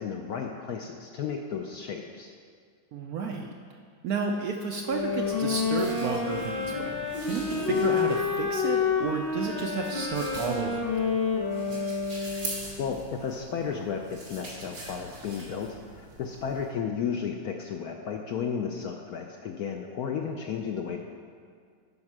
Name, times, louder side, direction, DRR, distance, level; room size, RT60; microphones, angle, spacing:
voice 1, 0.0-2.3 12.8-21.0, left 6 dB, 70° left, 3 dB, 0.9 m, -33 dB
voice 2, 2.9-3.8 4.0-11.1, right 5 dB, 70° right, 2 dB, 0.9 m, -32 dB
sound 1, 4.8-12.8, left 5 dB, 30° left, 1.5 m, -29 dB
sound 2, 4.9-16.7, right 2 dB, 55° right, 2.5 m, -43 dB
9.4 x 5.4 x 6.0 m, 2.1 s
omnidirectional pair, 2.1 m